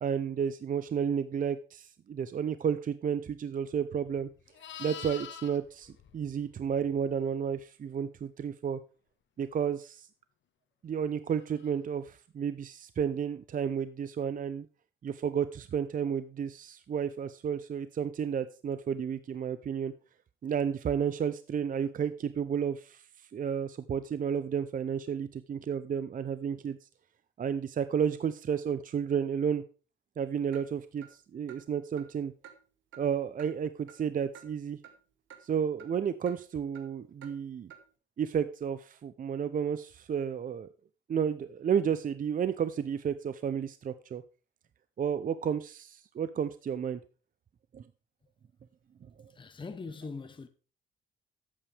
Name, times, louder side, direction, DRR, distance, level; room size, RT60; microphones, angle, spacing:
voice 1, 0.0-4.3 4.8-8.8 9.4-10.1 10.8-14.7 15.0-19.9 20.4-23.0 23.3-26.8 27.4-29.6 30.2-31.1 31.3-32.3 33.0-34.8 35.4-37.7 38.2-40.7 41.1-44.2 45.0-47.0 47.7-47.8, right 7 dB, 45° right, 0.6 m, -32 dB
Livestock farm animals working animals, 3.8-7.1 11.5-11.7, left 8 dB, 70° left, 1.5 m, -46 dB
Clock, 30.5-30.6 31.0-31.1 31.5-31.6 32.0-32.1 32.4-32.6 32.9-33.0 33.4-33.5 33.9-34.0 34.3-34.5 34.8-34.9 35.3-35.4 35.8-35.9 36.3-36.4 36.7-36.9 37.2-37.3 37.7-37.8, right 8 dB, 75° right, 1.8 m, -50 dB
voice 2, 49.3-50.5, left 4 dB, 25° left, 0.9 m, -41 dB
12.0 x 8.6 x 3.4 m
cardioid pair, 90°, 20 cm